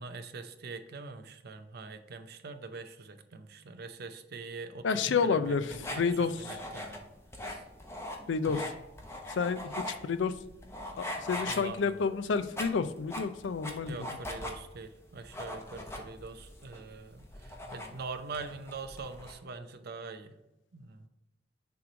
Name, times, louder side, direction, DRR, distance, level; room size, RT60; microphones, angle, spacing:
voice 1, 0.0-7.0 7.4-7.6 8.5-8.7 11.5-12.0 13.9-20.3 20.7-21.1, right 4 dB, 60° right, 8 dB, 0.6 m, -43 dB
voice 2, 4.8-6.6 8.3-8.6 9.3-10.3 11.0-14.1, left 5 dB, 80° left, 11 dB, 0.4 m, -30 dB
sound 1, 5.4-19.3, left 1 dB, 15° left, 0.9 m, -41 dB
7.0 x 3.1 x 5.0 m, 0.92 s
head